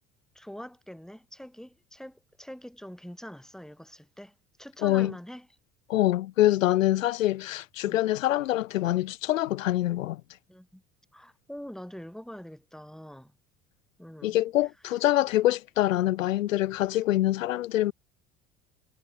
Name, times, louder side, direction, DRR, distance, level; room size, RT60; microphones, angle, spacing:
voice 1, 0.3-5.5 7.8-8.0 10.5-10.8 11.1-13.3 14.0-14.4 14.9-15.0, equal, ahead, 3.2 m, -44 dB
voice 2, 4.8-5.1 5.9-10.2 14.2-17.9, left 15 dB, 80° left, 0.7 m, -25 dB
hypercardioid pair, 65°, 39 cm